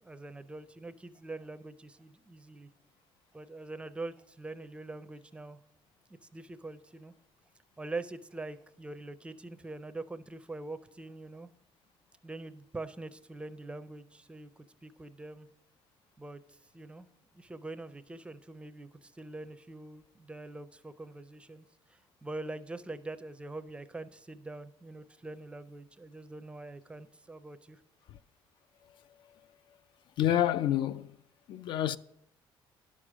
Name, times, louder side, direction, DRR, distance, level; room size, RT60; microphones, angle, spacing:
voice 1, 0.0-2.7 3.3-5.6 6.3-7.1 7.8-11.5 12.2-14.5 14.8-15.5 16.2-17.1 17.3-27.8, right 2 dB, 10° right, 0.4 m, -44 dB
voice 2, 30.2-31.2 31.5-32.0, left 11 dB, 60° left, 0.4 m, -28 dB
11.0 x 6.3 x 6.1 m
cardioid pair, 140°, 9 cm